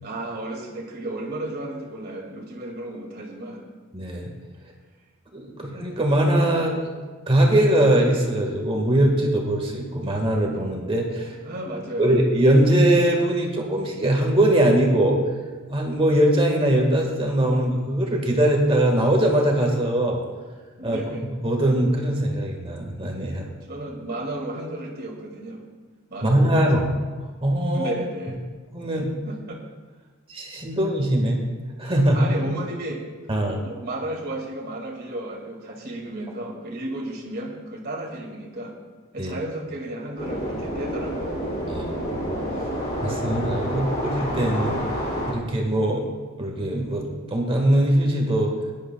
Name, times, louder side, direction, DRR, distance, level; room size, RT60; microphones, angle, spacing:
voice 1, 0.0-3.6 5.5-5.6 11.3-12.1 20.8-21.3 23.7-25.6 26.1-26.8 27.7-28.4 29.3-29.6 32.1-33.0 33.5-38.8 39.1-41.9 43.7-43.8, right 1 dB, 45° right, 0 dB, 2.3 m, -33 dB
voice 2, 3.9-4.3 5.3-6.8 7.3-11.3 12.0-15.2 15.7-20.2 20.8-21.0 21.4-23.5 26.2-26.9 27.4-27.9 28.7-29.2 30.3-31.4 31.8-32.3 33.3-33.6 39.2-39.3 41.7-41.9 43.0-44.8 45.3-46.0 46.4-48.5, right 1 dB, 25° right, 1 dB, 1.6 m, -21 dB
sound 1, 40.2-45.3, equal, 45° left, 2.7 m, -28 dB
19.0 x 11.0 x 2.3 m, 1.4 s
head